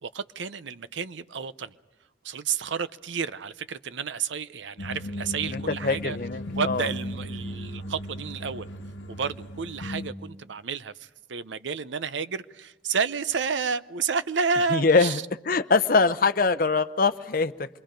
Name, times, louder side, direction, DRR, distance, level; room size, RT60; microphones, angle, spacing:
voice 1, 0.0-1.7 2.2-6.2 6.6-8.7 9.1-15.2, right 5 dB, 75° right, 0.7 m, -30 dB
sound 1, 4.8-10.1, left 1 dB, 75° left, 1.1 m, -36 dB
voice 2, 5.5-6.9 14.7-15.2 15.5-17.7, left 4 dB, 50° left, 0.7 m, -23 dB
27.0 x 23.0 x 5.2 m
head